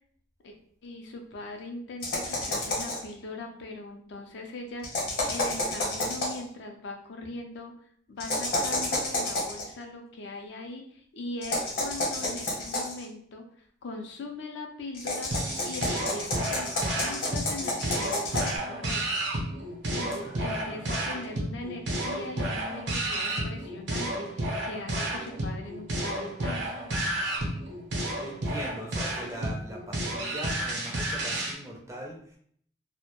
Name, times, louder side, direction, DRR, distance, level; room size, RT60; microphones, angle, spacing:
voice 1, 0.8-7.7 8.1-13.5 13.8-15.3 15.6-19.0 19.9-26.8, left 2 dB, 70° left, 3 dB, 0.4 m, -40 dB
sound 1, 2.0-3.1 4.8-6.4 8.2-9.6 11.4-13.0 14.9-18.6, left 2 dB, 55° left, 0.8 m, -30 dB
sound 2, 15.3-31.6, right 1 dB, 75° right, 0.6 m, -31 dB
voice 2, 20.2-20.9 28.2-32.4, right 1 dB, 15° right, 0 dB, 0.4 m, -41 dB
2.1 x 2.0 x 2.8 m, 0.62 s
head